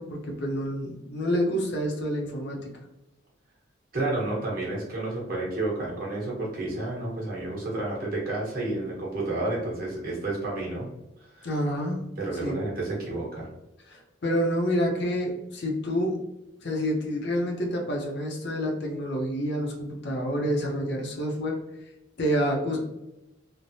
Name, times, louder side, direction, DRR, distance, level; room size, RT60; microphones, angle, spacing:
voice 1, 0.0-2.7 11.4-12.0 12.4-12.6 13.9-16.2 16.6-21.6 22.2-22.8, equal, 55° left, 0 dB, 0.6 m, -28 dB
voice 2, 3.9-10.8 11.3-11.5 12.2-13.5, right 2 dB, 45° right, -4 dB, 1.1 m, -30 dB
3.2 x 2.1 x 2.6 m, 0.93 s
head